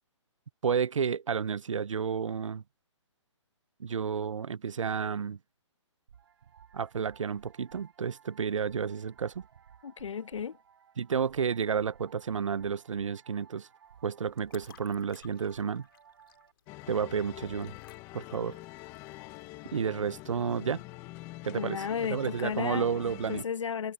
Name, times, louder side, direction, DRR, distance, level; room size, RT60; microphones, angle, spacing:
voice 1, 0.6-2.6 3.8-5.4 6.7-9.4 11.0-13.7 14.0-15.9 16.9-17.7 18.1-18.6 19.7-20.8 21.4-21.8 22.1-23.4, right 6 dB, 85° right, 0.8 m, -31 dB
sound 1, 6.1-16.5, right 8 dB, 55° right, 4.6 m, -58 dB
voice 2, 9.8-10.6 21.5-22.9 23.3-23.9, left 7 dB, 75° left, 1.0 m, -34 dB
sound 2, 13.8-20.6, left 9 dB, 45° left, 2.6 m, -60 dB
sound 3, 16.7-23.4, left 19 dB, 15° left, 0.7 m, -45 dB
hypercardioid pair, 165°, 16 cm